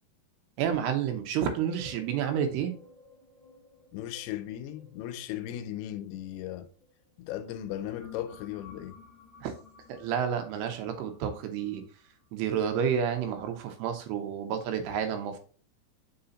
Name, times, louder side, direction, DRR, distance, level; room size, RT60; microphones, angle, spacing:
voice 1, 0.6-2.8 9.4-9.5 9.9-11.8 12.3-15.4, right 8 dB, 90° right, 3.1 m, -30 dB
sound 1, 1.6-6.9 7.4-12.4, left 4 dB, 20° left, 0.5 m, -53 dB
voice 2, 3.9-6.7 7.2-9.0, left 12 dB, 80° left, 2.4 m, -37 dB
5.5 x 4.8 x 3.8 m
omnidirectional pair, 4.6 m